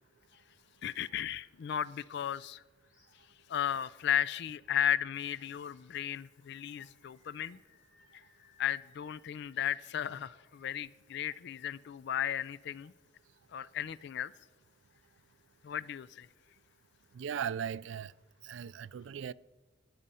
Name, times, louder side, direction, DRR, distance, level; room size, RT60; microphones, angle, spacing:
voice 1, 0.8-2.6 3.5-7.6 8.1-8.2 8.6-12.9 13.5-14.3 15.6-16.3, left 10 dB, 65° left, 0.3 m, -35 dB
Animal, 2.8-3.2 3.6-3.8 5.4-6.1 6.8-10.8, left 4 dB, 45° left, 3.9 m, -68 dB
voice 2, 17.1-18.1 18.4-19.3, right 8 dB, 70° right, 0.3 m, -38 dB
16.5 x 10.0 x 5.5 m
head